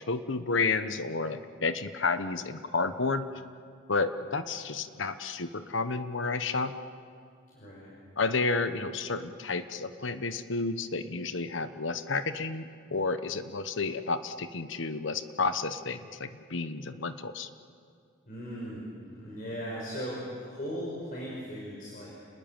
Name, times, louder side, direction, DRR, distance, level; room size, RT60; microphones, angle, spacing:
voice 1, 0.1-3.3 3.9-6.7 8.2-17.5, left 4 dB, 75° left, 11 dB, 1.1 m, -31 dB
voice 2, 7.5-7.9 18.3-18.8 19.1-22.1, equal, 45° left, -4 dB, 5.6 m, -38 dB
29.5 x 20.5 x 9.0 m, 2.2 s
head